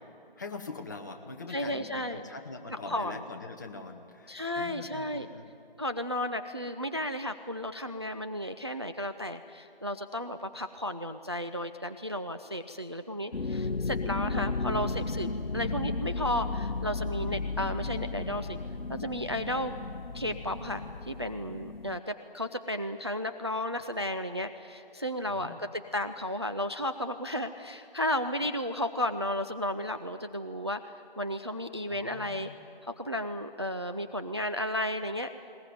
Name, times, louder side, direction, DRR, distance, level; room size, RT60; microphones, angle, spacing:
voice 1, 0.4-5.5 25.3-25.6 31.9-32.6, left 3 dB, 20° left, 4 dB, 0.9 m, -43 dB
voice 2, 1.5-2.3 2.7-3.2 4.3-5.3 5.8-18.6 18.9-19.7 20.1-32.5 32.8-35.3, left 1 dB, 30° right, 8 dB, 0.4 m, -33 dB
sound 1, 13.3-22.0, left 3 dB, 85° left, 0.8 m, -34 dB
20.5 x 19.5 x 9.2 m, 2.7 s
figure-of-eight pair, 155°, 29 cm